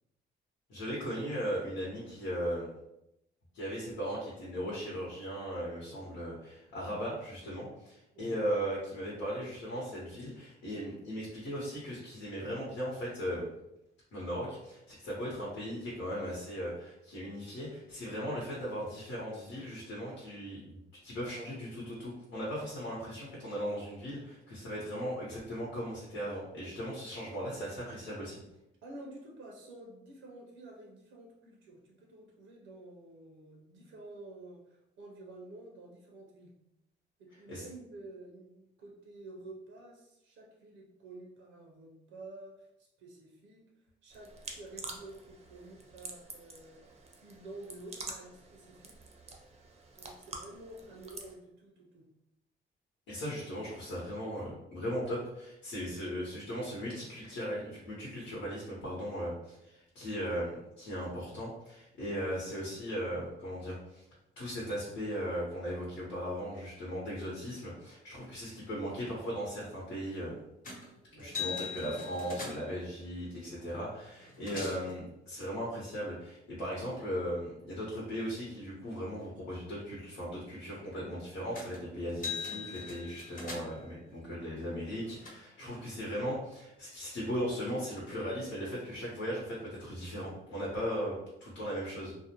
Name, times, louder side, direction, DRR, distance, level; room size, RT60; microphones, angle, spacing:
voice 1, 0.7-2.7 3.5-13.5 14.1-28.4 37.5-37.6 53.1-64.0 64.4-70.4 71.2-92.1, equal, 80° left, -6 dB, 1.0 m, -37 dB
voice 2, 8.1-8.5 28.8-36.5 37.2-49.0 49.9-52.1 71.1-71.4 85.6-85.9, right 2 dB, 80° right, -1 dB, 0.6 m, -50 dB
sound 1, 44.1-51.3, right 3 dB, 30° right, 0.5 m, -47 dB
sound 2, 70.6-70.9 71.2-72.8 73.8-73.9 74.2-74.9 81.5-81.8 82.1-83.9 84.7-85.3, left 5 dB, 45° left, 0.9 m, -41 dB
2.5 x 2.0 x 2.8 m, 0.86 s
cardioid pair, 90°, 20 cm